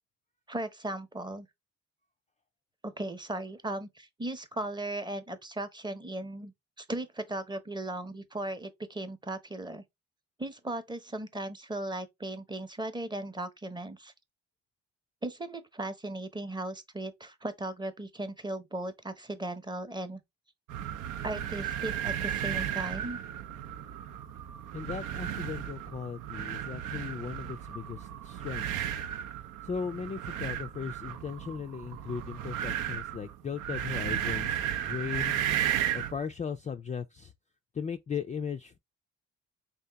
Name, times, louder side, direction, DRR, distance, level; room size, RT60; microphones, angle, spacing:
voice 1, 0.5-1.5 2.8-9.8 10.4-14.1 15.2-20.2 21.2-23.2, right 1 dB, 15° right, 0.7 m, -37 dB
sound 1, 20.7-36.2, right 10 dB, 85° right, 0.6 m, -34 dB
voice 2, 24.7-28.9 29.6-35.4 35.9-37.3 37.7-38.8, left 6 dB, 25° left, 0.3 m, -37 dB
3.6 x 2.8 x 3.3 m
cardioid pair, 90°, 30 cm